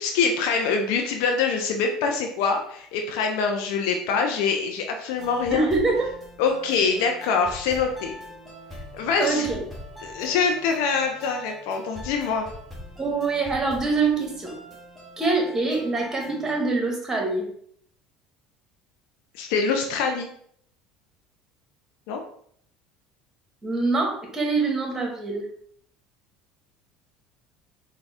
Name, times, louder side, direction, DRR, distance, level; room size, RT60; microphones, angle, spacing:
voice 1, 0.0-5.7 6.4-8.1 8.9-9.5 10.0-12.5 19.3-20.3 22.1-22.2, left 5 dB, 75° left, 3 dB, 0.5 m, -24 dB
sound 1, 5.2-16.6, left 1 dB, ahead, 1.5 m, -42 dB
voice 2, 5.5-6.0 9.2-9.6 13.0-14.6 15.2-17.5 23.6-25.5, right 3 dB, 20° right, 1 dB, 1.3 m, -24 dB
3.6 x 2.2 x 3.4 m, 0.63 s
hypercardioid pair, 80°, 2 cm